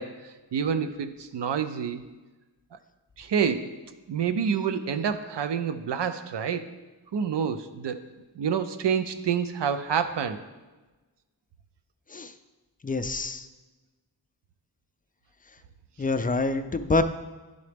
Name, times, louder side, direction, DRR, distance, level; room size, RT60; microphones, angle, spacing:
voice 1, 0.0-2.0 3.2-3.7 4.1-6.7 7.1-8.0 8.4-10.4, right 7 dB, 85° right, 9 dB, 0.5 m, -28 dB
voice 2, 12.8-13.5 16.0-17.0, left 3 dB, 25° left, 10 dB, 0.3 m, -26 dB
10.5 x 3.9 x 3.4 m, 1.2 s
wide cardioid pair, 65°, 41 cm